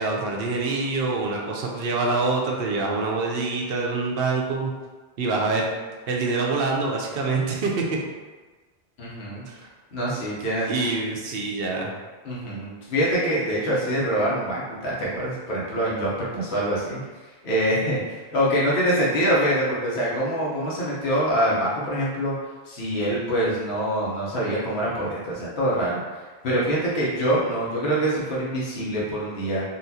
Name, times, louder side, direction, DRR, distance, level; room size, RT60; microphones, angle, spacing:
voice 1, 0.0-4.7 5.2-5.7 6.1-8.0 9.5-9.7 10.7-11.9, right 3 dB, 70° right, -1 dB, 0.8 m, -25 dB
voice 2, 9.0-9.4 9.9-10.7 12.2-17.0 17.4-22.3 22.7-29.6, right 1 dB, 85° left, -6 dB, 1.1 m, -25 dB
4.0 x 2.4 x 2.7 m, 1.3 s
omnidirectional pair, 1.0 m